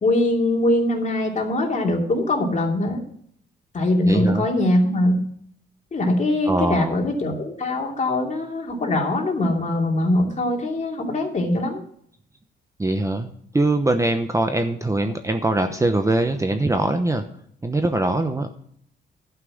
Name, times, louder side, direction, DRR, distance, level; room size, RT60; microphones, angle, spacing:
voice 1, 0.0-3.0 3.7-5.2 5.9-11.8, left 1 dB, 35° left, 0 dB, 2.8 m, -22 dB
voice 2, 4.1-4.5 6.4-7.0 12.8-13.3 13.5-17.2 17.6-18.5, right 2 dB, 15° right, 7 dB, 0.9 m, -22 dB
11.5 x 5.9 x 7.7 m, 0.66 s
cardioid pair, 90°, 20 cm